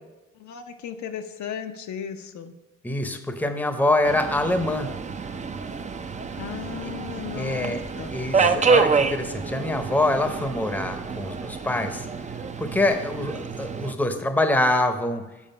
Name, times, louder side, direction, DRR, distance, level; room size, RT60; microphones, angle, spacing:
voice 1, 0.4-2.5 6.4-8.2, left 8 dB, 70° left, 6 dB, 0.7 m, -36 dB
voice 2, 2.8-4.9 6.8-6.9 7.3-7.8 8.1-12.1 12.6-15.2, left 1 dB, 5° left, 8 dB, 0.8 m, -25 dB
Subway metro underground, 4.0-13.9, right 5 dB, 25° right, 0.5 m, -27 dB
7.3 x 4.9 x 5.4 m, 1.1 s
cardioid pair, 90°, 30 cm